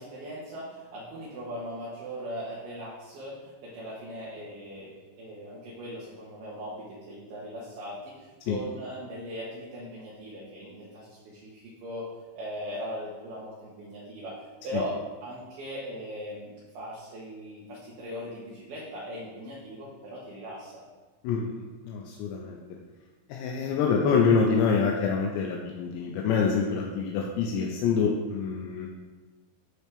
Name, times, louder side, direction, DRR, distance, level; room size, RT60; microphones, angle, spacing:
voice 1, 0.0-12.1 12.4-20.8, equal, 65° right, -7 dB, 2.8 m, -39 dB
voice 2, 21.2-22.6 23.3-28.9, left 5 dB, 85° left, 0 dB, 2.6 m, -26 dB
12.0 x 4.2 x 3.4 m, 1.3 s
omnidirectional pair, 5.6 m